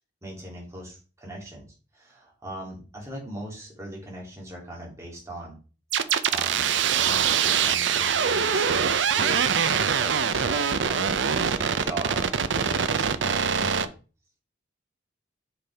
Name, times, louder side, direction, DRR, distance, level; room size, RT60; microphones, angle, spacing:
voice 1, 0.2-1.7 1.9-5.6 6.0-9.6 9.9-13.9, right 1 dB, 15° right, -3 dB, 2.9 m, -40 dB
sound 1, 5.9-13.9, right 7 dB, 70° right, 0.6 m, -23 dB
8.2 x 6.0 x 3.5 m, 0.35 s
head